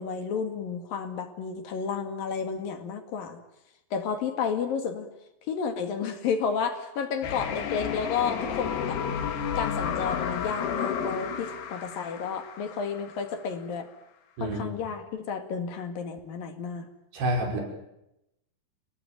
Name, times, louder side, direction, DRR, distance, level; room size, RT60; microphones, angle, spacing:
voice 1, 0.0-3.4 3.9-5.1 5.5-9.0 9.6-13.9 14.4-16.9, left 6 dB, 65° left, 7 dB, 3.8 m, -31 dB
sound 1, 7.2-13.2, left 7 dB, 85° left, 4.3 m, -31 dB
voice 2, 17.1-17.6, right 1 dB, 80° right, 2 dB, 7.1 m, -27 dB
29.5 x 19.0 x 9.1 m, 0.86 s
omnidirectional pair, 4.6 m